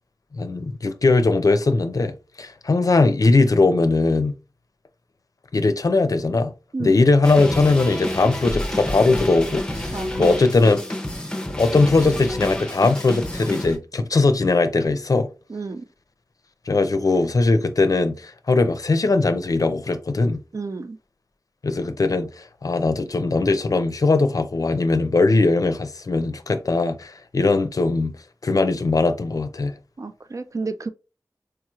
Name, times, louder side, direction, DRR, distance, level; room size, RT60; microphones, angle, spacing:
voice 1, 0.3-4.3 5.5-6.5 6.8-10.8 11.6-15.3 16.7-20.4 21.6-28.1 28.4-29.7, left 3 dB, 60° left, 0.5 m, -20 dB
sound 1, 7.2-13.8, left 1 dB, 10° left, 0.6 m, -29 dB
voice 2, 9.9-10.3 15.5-15.9 20.5-21.0 30.0-30.9, right 3 dB, 55° right, 0.4 m, -31 dB
4.7 x 3.0 x 2.3 m
wide cardioid pair, 60°, 7 cm